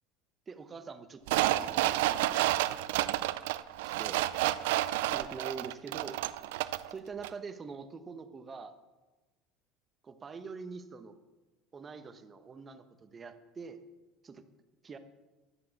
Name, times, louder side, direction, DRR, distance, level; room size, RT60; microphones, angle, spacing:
voice 1, 0.5-3.2 3.8-4.2 5.1-6.2 6.9-8.8 10.0-11.2 11.7-13.8 14.2-14.5 14.8-15.0, right 5 dB, 30° right, 9 dB, 1.1 m, -45 dB
sound 1, 1.3-6.9 7.2-7.3, right 15 dB, 85° right, 0.4 m, -30 dB
12.0 x 7.6 x 7.2 m, 1.1 s
supercardioid pair, 100°, 0 cm